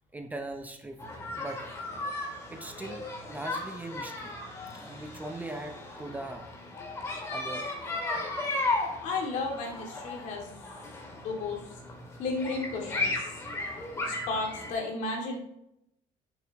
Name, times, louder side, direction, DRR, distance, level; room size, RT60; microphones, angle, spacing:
voice 1, 0.1-1.0 1.4-1.7 2.5-4.3 4.7-6.5 7.3-7.7, right 2 dB, 10° right, 5 dB, 0.7 m, -40 dB
sound 1, 1.0-14.7, left 2 dB, 20° left, 2.2 m, -36 dB
voice 2, 9.0-10.5 11.2-11.7 12.2-13.1 14.0-15.4, left 3 dB, 65° left, 0 dB, 2.4 m, -33 dB
11.0 x 7.1 x 3.0 m, 0.81 s
cardioid pair, 150°, 14 cm